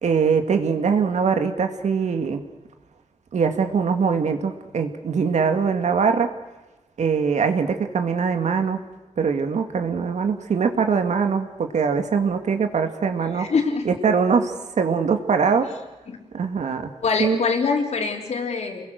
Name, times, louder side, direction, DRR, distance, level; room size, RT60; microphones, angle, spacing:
voice 1, 0.0-2.4 3.3-6.3 7.0-8.8 9.2-13.5 13.9-15.7 16.3-16.9 17.2-17.4, right 6 dB, 80° right, 6 dB, 2.2 m, -22 dB
voice 2, 13.3-13.9 16.1-16.2 17.0-18.9, left 4 dB, 70° left, 3 dB, 3.7 m, -24 dB
29.5 x 21.5 x 6.5 m, 1.1 s
wide cardioid pair, 130°, 12 cm